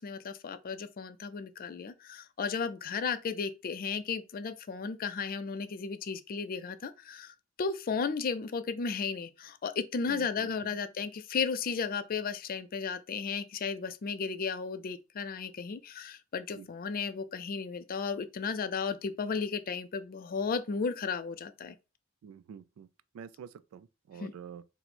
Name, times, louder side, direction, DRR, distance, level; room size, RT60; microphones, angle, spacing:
voice 1, 0.0-21.8 24.2-24.3, left 5 dB, 45° left, 0.4 m, -34 dB
voice 2, 10.1-10.8 16.6-16.7 22.2-22.9 23.1-24.7, right 7 dB, 85° right, 0.3 m, -47 dB
4.3 x 2.1 x 4.1 m
head